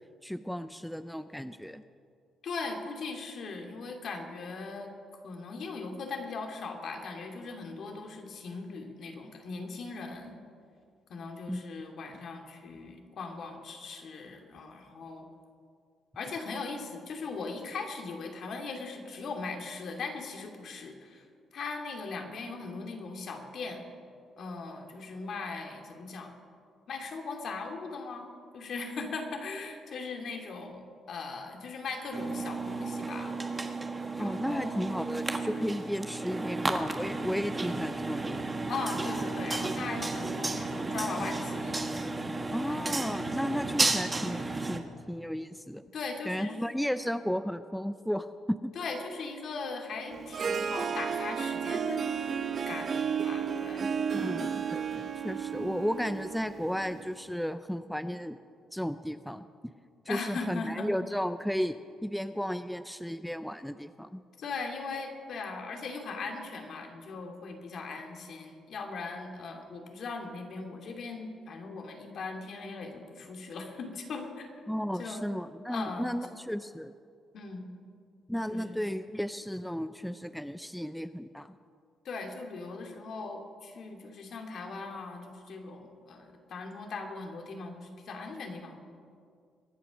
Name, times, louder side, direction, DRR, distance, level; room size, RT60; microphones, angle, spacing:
voice 1, 0.2-1.8 11.5-11.6 34.2-38.6 42.5-45.8 46.2-48.7 53.8-58.4 58.7-59.5 60.1-61.8 62.0-64.2 74.7-76.9 78.3-81.5, equal, ahead, 11 dB, 0.5 m, -34 dB
voice 2, 2.4-4.9 5.2-10.4 11.1-15.3 16.2-21.2 21.5-23.8 24.4-26.3 26.9-28.3 28.5-30.8 31.1-33.3 34.1-34.8 38.7-41.8 42.7-43.2 45.9-46.6 48.7-52.1 52.7-54.5 60.1-60.9 64.4-74.5 75.0-75.3 75.7-76.1 77.3-77.7 78.5-78.8 82.0-88.8, left 4 dB, 60° left, 3 dB, 2.5 m, -39 dB
sound 1, 32.1-44.8, right 3 dB, 20° right, 1.4 m, -33 dB
Harp, 50.1-57.2, right 7 dB, 50° right, 0.9 m, -33 dB
23.0 x 8.1 x 6.3 m, 2.2 s
cardioid pair, 90°, 0 cm